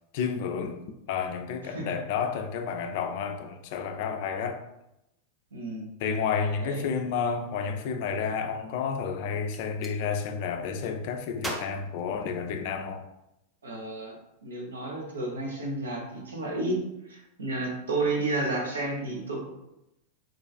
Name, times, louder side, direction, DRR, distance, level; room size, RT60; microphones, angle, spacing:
voice 1, 0.1-0.8 1.1-4.6 6.0-13.1, left 6 dB, 50° left, 0.3 m, -31 dB
voice 2, 5.5-5.9 6.6-6.8 13.6-14.2 14.4-16.8 17.1-19.5, right 2 dB, 70° right, 0.7 m, -31 dB
Gunshot gunfire, 9.4-10.0 11.4-12.9, right 1 dB, 10° right, 0.5 m, -39 dB
3.7 x 2.3 x 2.3 m
figure-of-eight pair, 90°, 0 cm